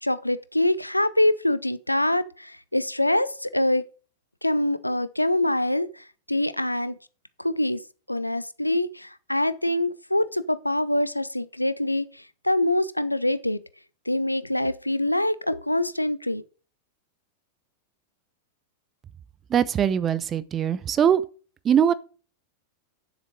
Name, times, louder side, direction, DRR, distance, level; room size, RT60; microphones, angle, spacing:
voice 1, 0.0-3.8 4.4-6.9 7.4-7.8 8.1-13.6 14.1-16.4, left 1 dB, 85° left, 0.6 m, -25 dB
voice 2, 19.5-21.2 21.6-21.9, right 8 dB, 25° right, 0.7 m, -21 dB
9.6 x 7.5 x 4.8 m
figure-of-eight pair, 90°, 0 cm